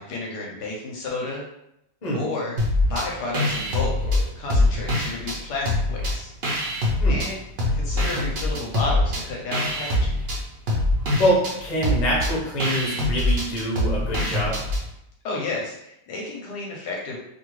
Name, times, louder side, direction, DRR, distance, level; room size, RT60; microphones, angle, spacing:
voice 1, 0.0-1.4 2.1-2.6 2.9-6.3 7.1-7.4 7.7-10.2 15.2-17.2, left 3 dB, 70° left, -2 dB, 1.1 m, -31 dB
sound 1, 2.6-3.1 3.3-5.4 5.7-7.3 7.6-14.8, left 1 dB, 70° right, 0.5 m, -23 dB
voice 2, 11.2-14.6, equal, 40° left, -4 dB, 0.5 m, -25 dB
2.7 x 2.7 x 3.0 m, 0.81 s
omnidirectional pair, 2.0 m